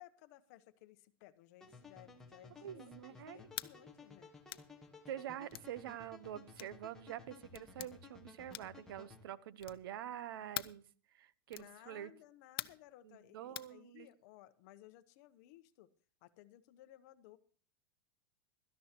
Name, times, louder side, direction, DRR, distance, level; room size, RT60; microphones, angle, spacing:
voice 1, 0.0-4.3 11.5-15.9 16.2-17.4, left 15 dB, 45° left, 12 dB, 0.9 m, -59 dB
sound 1, 1.6-9.2, left 4 dB, 5° left, 1.3 m, -57 dB
voice 2, 2.6-3.5 5.1-10.8 11.1-12.1 13.0-14.1, right 11 dB, 75° right, 17 dB, 0.8 m, -46 dB
sound 2, 3.5-3.7 4.5-4.7 5.5-5.7 6.5-6.8 7.5-7.9 8.5-8.8 9.6-9.9 10.5-10.8 11.5-11.7 12.6-12.9 13.5-13.7, left 13 dB, 90° left, 0.7 m, -44 dB
17.0 x 13.0 x 2.9 m, 0.42 s
supercardioid pair, 165°, 12 cm